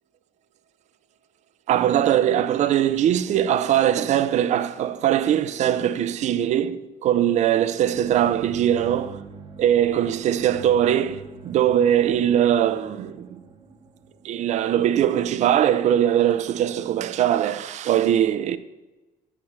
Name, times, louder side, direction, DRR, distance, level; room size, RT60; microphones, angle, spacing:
voice 1, 1.7-9.2 9.6-13.4 14.2-18.6, right 10 dB, 45° right, 0.5 m, -21 dB
sound 1, 7.9-15.6, right 4 dB, 30° right, 0.9 m, -43 dB
7.9 x 7.4 x 6.2 m
cardioid pair, 170°, 16 cm